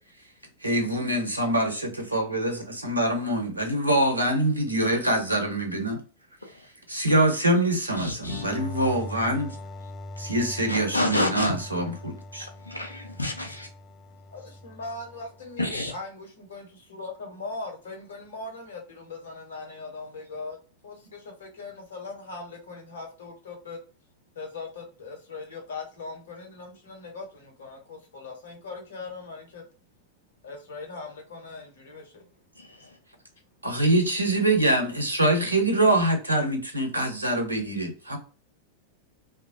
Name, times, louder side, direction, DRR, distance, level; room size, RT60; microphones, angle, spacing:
voice 1, 0.6-6.0 6.9-9.6 10.2-12.5 33.6-38.2, right 1 dB, 85° right, 3 dB, 0.7 m, -24 dB
voice 2, 8.0-8.4 10.7-11.5 12.6-13.7 15.6-15.9 32.6-33.0, left 2 dB, 85° left, 3 dB, 0.5 m, -29 dB
sound 1, 8.2-15.7, left 2 dB, 25° left, 0.3 m, -41 dB
voice 3, 14.3-20.6 20.8-23.8 24.3-29.6 30.4-32.3, left 3 dB, 65° left, 3 dB, 0.9 m, -40 dB
2.9 x 2.2 x 2.6 m, 0.36 s
figure-of-eight pair, 90°, 0 cm